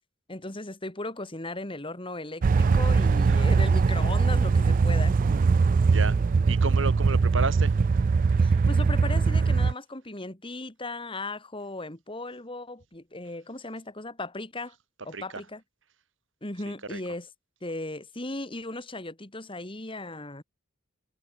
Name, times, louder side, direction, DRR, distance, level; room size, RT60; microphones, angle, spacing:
voice 1, 0.3-5.2 8.4-14.7 15.0-15.6 16.4-17.3 17.6-20.4, left 2 dB, 25° left, 2.7 m, -37 dB
sound 1, 2.4-9.7, right 4 dB, 40° right, 0.3 m, -21 dB
voice 2, 6.5-7.7 15.1-15.4 16.9-17.0, right 4 dB, 65° right, 2.0 m, -31 dB
head